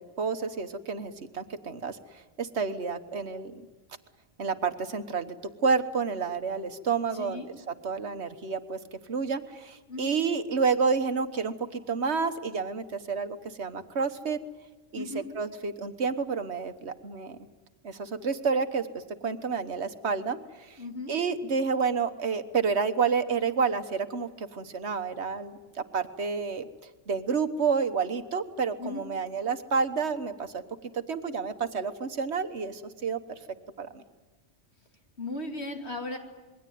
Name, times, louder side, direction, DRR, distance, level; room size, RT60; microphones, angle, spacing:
voice 1, 0.0-3.6 4.4-14.4 14.9-15.1 15.3-17.4 17.8-20.8 21.1-26.7 27.1-30.6 30.9-33.2 33.8-34.0, right 5 dB, 75° right, 9 dB, 1.6 m, -30 dB
voice 2, 7.1-7.5 9.9-10.2 15.0-15.3 20.8-21.1 28.8-29.0 35.2-36.2, left 2 dB, 70° left, 3 dB, 3.0 m, -36 dB
27.0 x 22.0 x 9.4 m, 1.2 s
omnidirectional pair, 1.1 m